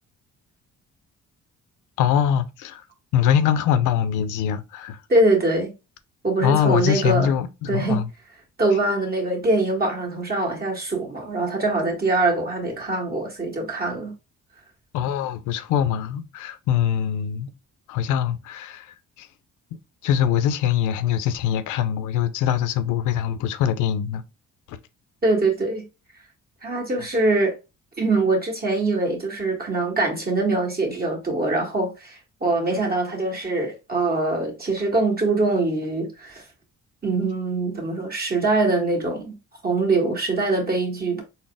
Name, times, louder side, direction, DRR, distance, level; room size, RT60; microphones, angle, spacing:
voice 1, 2.0-2.8 3.1-5.0 6.4-8.1 14.9-17.5 17.9-19.3 20.0-24.2 24.7-24.8, left 9 dB, 90° left, 0.5 m, -23 dB
voice 2, 5.1-5.7 6.2-7.3 7.7-8.1 8.6-14.1 25.2-25.8 26.6-27.6 28.0-36.4 37.0-39.4 39.6-41.2, right 2 dB, 30° right, 1.6 m, -23 dB
4.0 x 2.0 x 3.4 m
cardioid pair, 90°, 30 cm